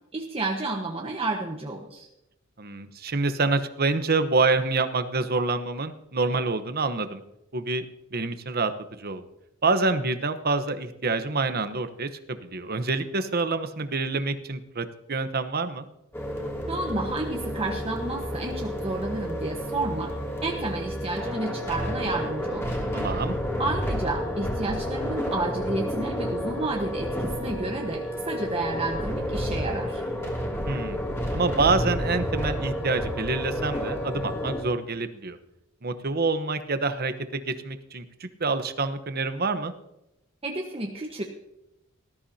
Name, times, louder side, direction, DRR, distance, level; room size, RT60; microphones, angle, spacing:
voice 1, 0.1-2.1 16.7-20.1 20.4-22.8 23.6-30.0 40.4-41.2, right 2 dB, 30° right, 0 dB, 1.2 m, -31 dB
voice 2, 2.6-7.2 7.5-7.8 8.1-8.7 9.0-9.2 9.6-15.9 22.9-23.3 30.7-31.0 31.3-35.4 35.8-39.7, right 3 dB, 50° right, 9 dB, 1.0 m, -27 dB
sound 1, 16.1-34.6, equal, 15° left, 2.6 m, -30 dB
19.0 x 13.5 x 2.8 m, 0.87 s
head